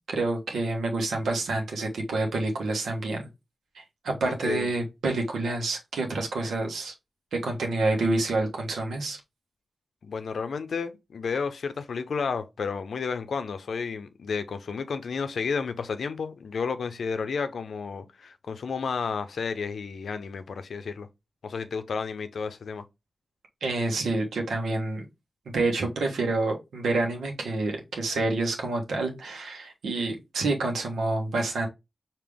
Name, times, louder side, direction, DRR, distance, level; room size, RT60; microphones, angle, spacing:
voice 1, 0.1-3.3 3.7-6.9 7.3-9.2 23.6-25.1 25.5-31.7, right 2 dB, 90° right, 1.2 m, -28 dB
voice 2, 4.4-4.7 10.0-21.1 21.4-22.8, left 5 dB, 80° left, 0.6 m, -32 dB
5.1 x 2.9 x 3.5 m
cardioid pair, 40°, 0 cm